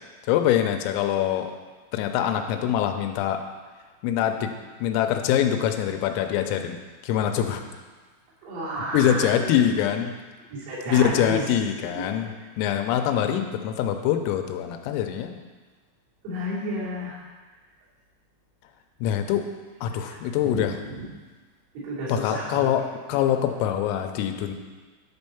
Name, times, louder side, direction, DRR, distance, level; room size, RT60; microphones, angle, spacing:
voice 1, 0.3-1.5 1.9-3.4 4.0-4.5 4.8-6.8 7.0-7.6 8.9-10.1 10.9-15.4 19.0-19.4 19.8-20.7 22.1-22.8 23.1-24.5, left 10 dB, 85° left, 6 dB, 3.4 m, -24 dB
voice 2, 8.4-9.5 10.5-11.4 11.9-12.0 16.2-17.2 20.1-20.2 20.4-21.1 21.8-22.7, right 1 dB, 85° right, -8 dB, 5.8 m, -31 dB
11.0 x 4.5 x 7.0 m, 1.4 s
omnidirectional pair, 5.9 m